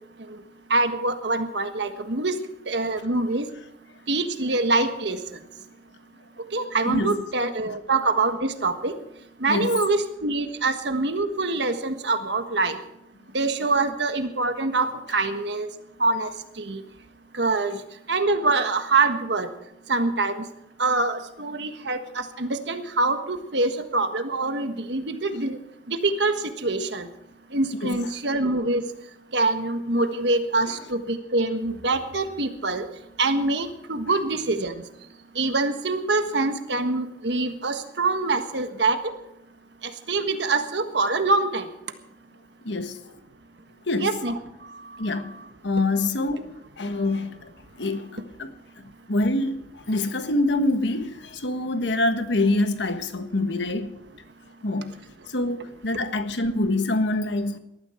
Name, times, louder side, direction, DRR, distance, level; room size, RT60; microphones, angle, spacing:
voice 1, 0.7-2.4 2.7-3.5 4.1-5.2 6.5-8.9 9.4-12.8 13.3-15.7 16.0-16.3 16.6-16.8 17.3-17.8 18.1-19.5 19.9-20.4 20.8-25.6 25.9-27.1 27.5-28.8 29.3-32.8 33.2-34.8 35.3-39.0 39.8-41.7 44.0-44.3, right 3 dB, 70° right, 1.5 m, -25 dB
voice 2, 6.8-7.2 7.7-7.8 9.5-9.7 27.8-28.0 42.6-43.0 43.9-44.1 45.0-45.3 45.6-46.5 46.8-47.5 47.8-48.5 49.1-54.0 54.6-54.9 55.3-57.6, left 2 dB, 75° left, 1.4 m, -25 dB
19.5 x 13.0 x 4.5 m
head